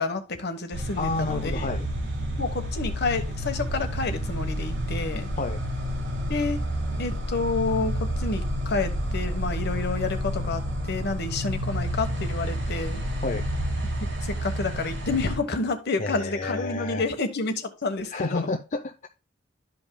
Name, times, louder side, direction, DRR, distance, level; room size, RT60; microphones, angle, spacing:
voice 1, 0.0-1.7 2.4-5.3 6.3-6.6 7.0-10.6 10.9-13.0 14.2-18.6, left 3 dB, 55° left, 1.2 m, -29 dB
sound 1, 0.7-15.4, equal, 65° right, 3.0 m, -30 dB
voice 2, 1.0-1.9 5.4-5.6 13.2-13.5 16.0-17.1 18.1-19.1, left 3 dB, 40° left, 0.6 m, -30 dB
12.5 x 5.2 x 2.2 m
head